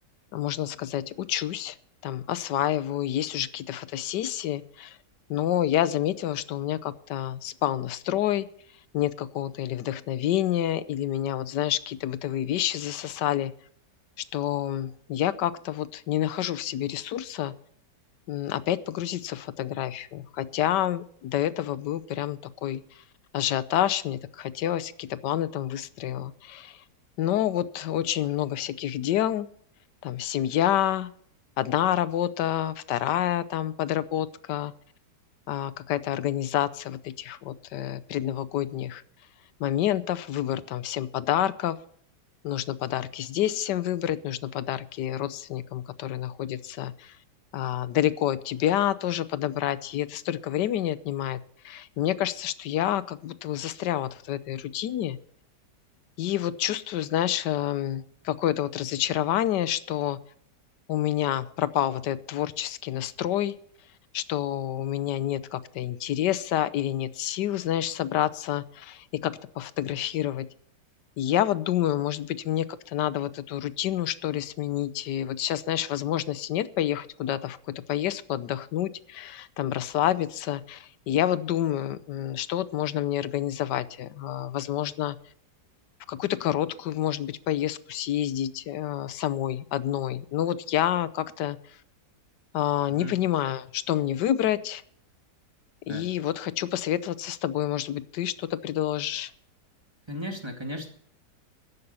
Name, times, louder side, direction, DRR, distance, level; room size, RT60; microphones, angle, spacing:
voice 1, 0.3-1.8 2.0-5.0 5.3-8.5 8.9-13.5 14.3-17.5 18.3-23.0 23.3-26.8 27.2-29.5 30.0-31.1 31.6-34.7 35.5-39.0 39.6-41.8 42.4-47.2 47.5-51.4 51.6-55.2 56.2-60.2 60.9-63.5 64.1-70.5 71.2-85.2 86.1-91.6 92.5-94.8 95.9-99.3, left 12 dB, 90° left, 15 dB, 1.4 m, -28 dB
voice 2, 100.1-100.9, equal, 15° right, 3 dB, 2.1 m, -35 dB
13.5 x 11.0 x 5.6 m, 0.62 s
omnidirectional pair, 1.8 m